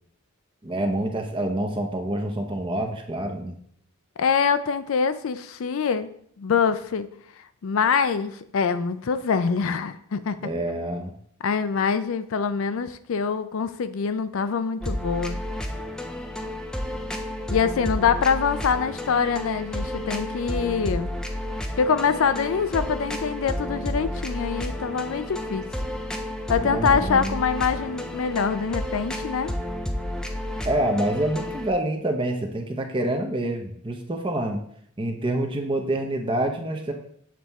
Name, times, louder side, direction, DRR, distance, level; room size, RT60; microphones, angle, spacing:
voice 1, 0.6-3.6 10.4-11.1 26.6-27.4 30.6-34.6 35.0-36.9, right 1 dB, 25° right, 3 dB, 0.7 m, -27 dB
voice 2, 4.2-6.1 6.4-7.1 7.6-10.4 11.4-15.4 17.5-21.1 21.8-25.7 26.5-29.5, left 6 dB, 65° left, 12 dB, 0.4 m, -24 dB
sound 1, 14.8-31.7, left 1 dB, 5° left, 0.4 m, -31 dB
7.4 x 4.2 x 3.5 m, 0.65 s
head